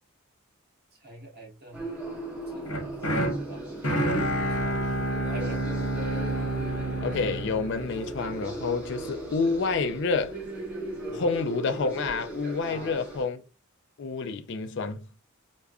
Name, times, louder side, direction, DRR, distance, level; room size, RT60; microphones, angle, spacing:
voice 1, 1.0-1.8 2.3-4.8 5.3-5.6 11.1-11.3 12.7-13.0, right 1 dB, 45° right, 1.4 m, -44 dB
sound 1, 1.7-13.2, right 2 dB, 5° right, 1.0 m, -38 dB
sound 2, 2.7-8.8, right 1 dB, 80° left, 0.9 m, -29 dB
voice 2, 7.0-10.3 11.1-13.4 14.0-15.0, left 4 dB, 55° left, 0.4 m, -28 dB
4.9 x 2.2 x 2.3 m
head